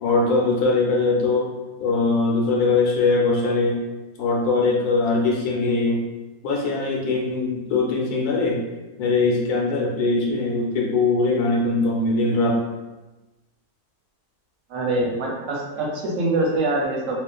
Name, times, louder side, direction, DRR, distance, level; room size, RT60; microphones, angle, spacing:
voice 1, 0.0-1.5 1.8-3.8 4.2-6.0 6.4-8.6 9.0-12.6, left 3 dB, 85° left, -2 dB, 1.1 m, -21 dB
voice 2, 14.7-17.2, right 2 dB, 70° right, -2 dB, 0.9 m, -24 dB
2.4 x 2.4 x 2.2 m, 1.1 s
omnidirectional pair, 1.6 m